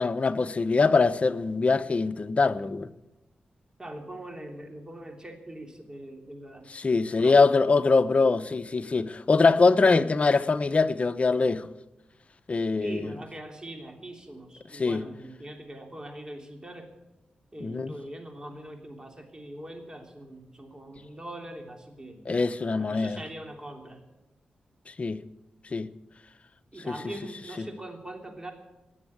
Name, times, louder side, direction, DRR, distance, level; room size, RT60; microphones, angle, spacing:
voice 1, 0.0-2.9 6.7-11.7 12.5-13.0 14.7-15.0 17.6-17.9 22.3-23.2 25.0-25.2 25.7-25.9 27.6-27.7, left 4 dB, 45° left, 0.8 m, -23 dB
voice 2, 3.8-7.4 12.8-16.9 17.5-22.2 22.7-24.0 26.7-28.5, right 1 dB, 25° right, 3.3 m, -42 dB
18.5 x 7.3 x 9.3 m
cardioid pair, 55°, 3 cm